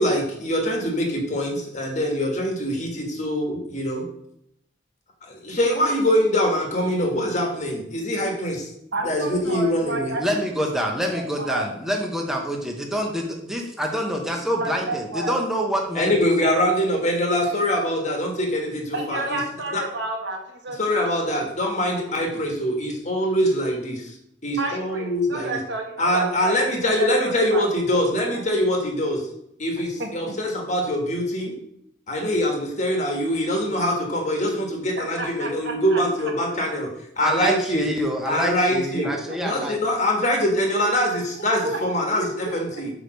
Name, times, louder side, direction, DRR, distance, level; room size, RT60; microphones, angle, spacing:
voice 1, 0.0-4.0 5.2-8.7 9.0-10.1 15.9-19.4 19.7-19.8 20.8-24.2 24.4-25.6 26.0-29.3 29.6-31.5 32.1-36.9 37.2-37.9 38.2-39.0 39.4-42.9, equal, 40° left, 1 dB, 1.5 m, -23 dB
voice 2, 8.9-10.4 10.8-11.7 14.6-15.4 18.9-21.0 21.3-21.8 22.1-22.5 24.6-28.5 29.8-30.3 35.0-36.7 39.0-39.7 41.3-41.8 42.2-42.8, right 2 dB, 65° right, 2 dB, 1.3 m, -32 dB
voice 3, 10.2-16.5 37.2-39.8, equal, ahead, 0 dB, 1.0 m, -26 dB
5.0 x 4.9 x 6.2 m, 0.75 s
head